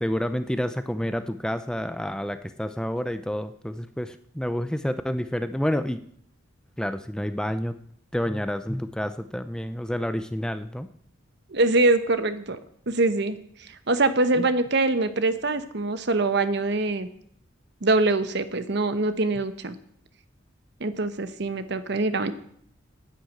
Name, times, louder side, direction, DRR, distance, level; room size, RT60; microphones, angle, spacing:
voice 1, 0.0-6.0 6.8-7.7 8.1-10.9 14.3-14.5, equal, 5° left, 10 dB, 0.5 m, -29 dB
voice 2, 11.5-12.6 12.9-13.4 13.9-17.1 17.8-19.7 20.8-22.3, right 2 dB, 55° right, 11 dB, 1.0 m, -23 dB
11.5 x 9.4 x 8.5 m, 0.68 s
head